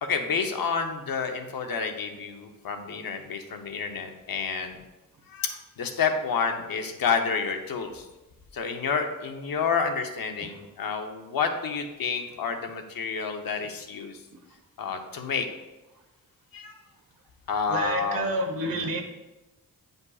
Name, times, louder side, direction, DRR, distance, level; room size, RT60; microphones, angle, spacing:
voice 1, 0.0-4.8 5.3-8.0 8.5-14.2 14.8-15.5 16.5-16.8 17.5-18.3 18.7-18.9, left 5 dB, 80° left, 5 dB, 0.8 m, -29 dB
voice 2, 17.7-19.0, right 2 dB, 80° right, 4 dB, 1.1 m, -29 dB
9.6 x 5.3 x 2.4 m, 1.0 s
wide cardioid pair, 115°, 35 cm